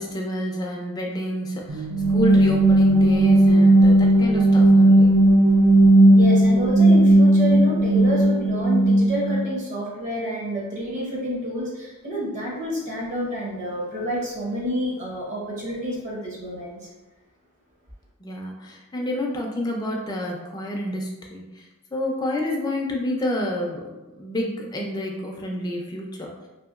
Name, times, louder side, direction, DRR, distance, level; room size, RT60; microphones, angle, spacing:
voice 1, 0.0-5.1 18.2-26.5, left 1 dB, 20° left, 0 dB, 0.3 m, -29 dB
sound 1, 1.7-9.5, right 1 dB, 80° right, 0.3 m, -16 dB
voice 2, 6.1-16.9, equal, 35° right, -4 dB, 0.6 m, -29 dB
2.8 x 2.6 x 2.4 m, 1.1 s
head